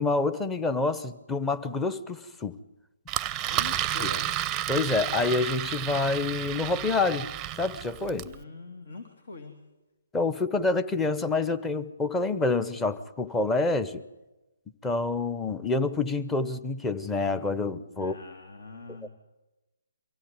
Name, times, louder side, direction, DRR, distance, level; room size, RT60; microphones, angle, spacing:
voice 1, 0.0-2.6 4.0-4.1 4.7-7.3 7.6-8.3 10.1-14.0 14.8-18.2 19.0-19.1, left 3 dB, 10° left, 12 dB, 1.0 m, -27 dB
Engine, 3.1-8.4, right 12 dB, 20° right, 0.7 m, -31 dB
voice 2, 3.5-4.4 8.2-9.5 18.0-19.1, left 3 dB, 65° left, 6 dB, 2.9 m, -43 dB
23.5 x 16.5 x 9.6 m, 1.0 s
figure-of-eight pair, 140°, 0 cm